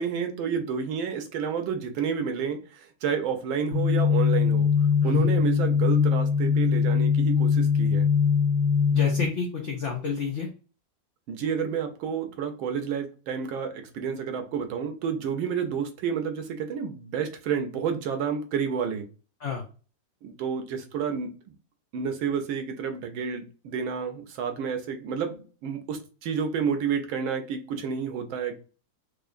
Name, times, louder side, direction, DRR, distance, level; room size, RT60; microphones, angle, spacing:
voice 1, 0.0-4.7 5.0-8.1 11.3-19.1 20.2-21.3 21.9-28.6, right 6 dB, 85° right, 1.5 m, -30 dB
sound 1, 3.7-9.3, left 6 dB, 60° left, 1.0 m, -22 dB
voice 2, 8.9-10.5 19.4-19.6, left 6 dB, 75° left, 0.6 m, -30 dB
4.6 x 2.5 x 2.5 m
omnidirectional pair, 2.1 m